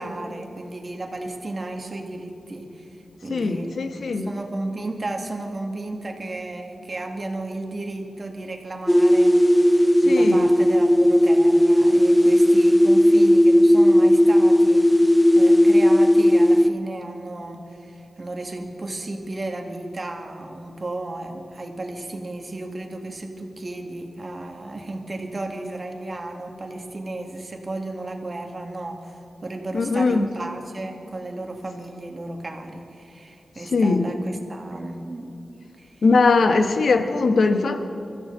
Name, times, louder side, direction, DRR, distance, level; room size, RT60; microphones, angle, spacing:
voice 1, 0.0-3.0 3.2-3.7 4.2-15.0 15.3-35.4 35.8-36.0 36.4-36.6, right 2 dB, 45° right, 3 dB, 2.1 m, -33 dB
voice 2, 3.3-4.3 10.0-10.5 29.7-30.3 33.7-34.1 36.0-37.8, left 3 dB, 80° left, 6 dB, 1.2 m, -20 dB
sound 1, 8.9-16.7, equal, 5° left, 0.5 m, -15 dB
24.0 x 14.5 x 4.0 m, 2.8 s
cardioid pair, 55°, 0 cm